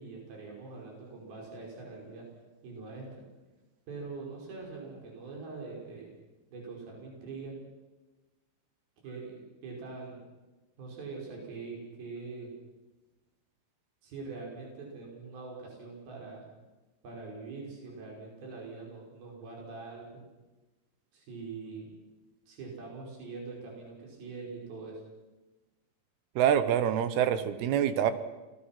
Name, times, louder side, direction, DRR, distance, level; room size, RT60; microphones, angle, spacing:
voice 1, 0.0-2.2 2.6-3.1 3.9-6.1 6.5-7.6 9.0-10.2 10.8-12.5 14.0-16.5 17.0-20.2 21.1-21.9 22.5-25.0, right 4 dB, 55° right, -1 dB, 6.9 m, -43 dB
voice 2, 26.4-28.1, right 9 dB, 70° right, 11 dB, 2.9 m, -26 dB
29.5 x 19.5 x 5.9 m, 1.2 s
omnidirectional pair, 5.2 m